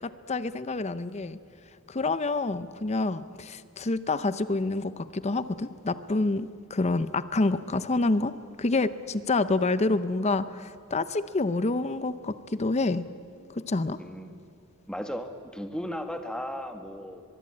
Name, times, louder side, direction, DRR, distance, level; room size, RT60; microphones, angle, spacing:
voice 1, 0.0-1.4 1.9-8.3 8.6-13.1 13.6-14.0, left 2 dB, 30° left, 14 dB, 0.6 m, -27 dB
voice 2, 14.9-17.2, equal, 5° left, 6 dB, 1.5 m, -35 dB
23.0 x 23.0 x 8.6 m, 2.5 s
head